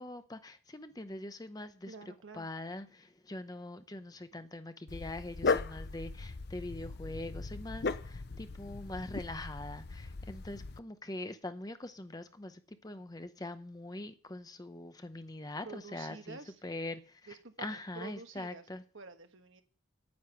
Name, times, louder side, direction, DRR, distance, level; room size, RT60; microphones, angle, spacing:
voice 1, 0.0-1.9 2.3-17.3 17.6-18.8, left 2 dB, 20° left, 0.7 m, -43 dB
voice 2, 1.8-2.5 15.6-16.6 17.3-18.7 18.9-19.6, right 4 dB, 70° right, 1.3 m, -48 dB
Dog, 4.9-10.8, left 4 dB, 50° left, 0.6 m, -37 dB
9.6 x 9.6 x 5.8 m
head